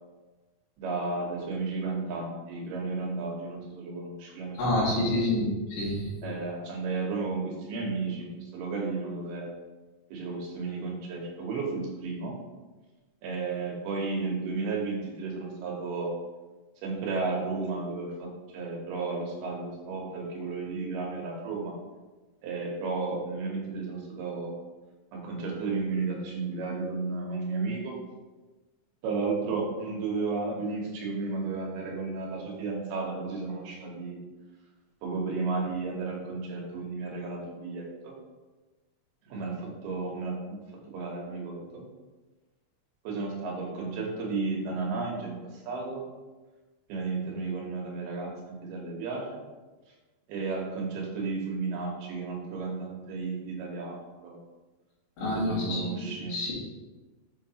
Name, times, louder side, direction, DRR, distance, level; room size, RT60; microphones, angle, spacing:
voice 1, 0.8-5.1 6.2-9.5 10.1-12.4 13.2-16.1 16.8-18.3 18.5-21.8 22.4-24.5 25.1-28.0 29.0-34.2 35.0-38.1 39.3-39.6 39.8-40.6 40.9-41.8 43.0-46.0 46.9-49.4 50.3-54.4 55.2-56.5, right 4 dB, 75° right, -1 dB, 2.9 m, -33 dB
voice 2, 4.5-6.3 55.2-56.5, left 1 dB, 75° left, -9 dB, 3.7 m, -28 dB
6.8 x 5.7 x 2.8 m, 1.2 s
omnidirectional pair, 4.6 m